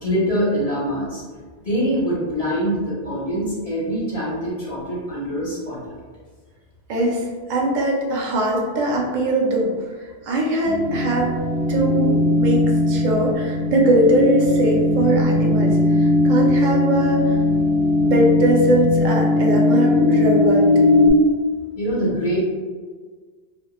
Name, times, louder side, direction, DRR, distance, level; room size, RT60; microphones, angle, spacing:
voice 1, 0.0-1.2 1.6-6.0 21.8-22.4, equal, 40° left, -7 dB, 0.7 m, -24 dB
voice 2, 6.9-9.7 10.0-11.4 11.7-17.4 18.0-20.7, right 1 dB, 55° right, -1 dB, 0.6 m, -21 dB
sound 1, 10.6-21.1, left 2 dB, 90° right, 0.9 m, -18 dB
2.1 x 2.1 x 3.0 m, 1.5 s
omnidirectional pair, 1.1 m